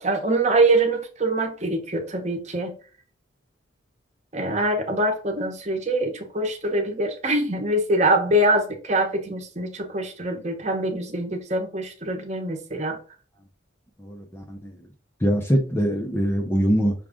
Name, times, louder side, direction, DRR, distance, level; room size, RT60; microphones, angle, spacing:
voice 1, 0.0-2.7 4.3-13.0, right 1 dB, 35° right, 1.0 m, -24 dB
voice 2, 14.0-14.7 15.2-16.9, equal, 10° left, 0.6 m, -23 dB
6.1 x 2.4 x 3.6 m
head